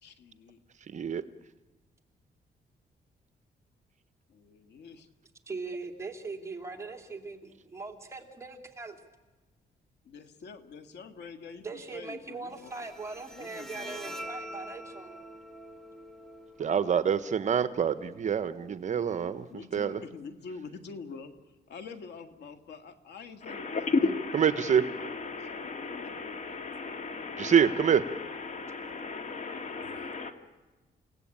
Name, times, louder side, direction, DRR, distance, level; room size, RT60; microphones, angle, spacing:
voice 1, 0.0-0.6 4.3-5.1 10.1-12.9 13.3-14.3 19.5-21.3 21.7-23.9 25.5-26.1 29.8-30.1, left 5 dB, 85° left, 1.8 m, -46 dB
voice 2, 0.9-1.2 16.6-19.4 19.7-20.0 24.3-24.8 27.4-28.0, right 8 dB, 45° right, 0.9 m, -26 dB
voice 3, 5.5-9.0 11.6-15.2, right 3 dB, 15° right, 2.8 m, -40 dB
Bowed string instrument, 12.5-19.5, right 1 dB, 5° left, 1.6 m, -46 dB
voice 4, 23.4-30.3, left 4 dB, 45° left, 2.3 m, -34 dB
29.5 x 17.5 x 8.9 m
cardioid pair, 145°, 17 cm